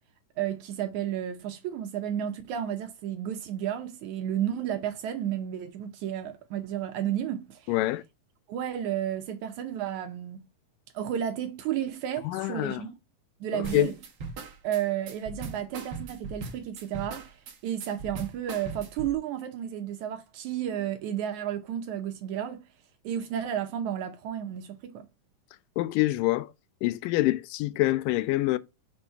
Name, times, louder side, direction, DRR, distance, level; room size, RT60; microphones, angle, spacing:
voice 1, 0.4-7.7 8.5-10.4 10.9-13.0 13.4-13.9 14.6-22.6 23.0-25.1, right 10 dB, 75° right, 1.9 m, -32 dB
voice 2, 7.7-8.0 12.3-12.8 13.5-13.9 25.8-26.5 26.8-28.6, left 17 dB, 85° left, 2.2 m, -26 dB
sound 1, 13.6-19.1, right 4 dB, 55° right, 1.3 m, -39 dB
6.4 x 4.2 x 5.5 m
omnidirectional pair, 3.9 m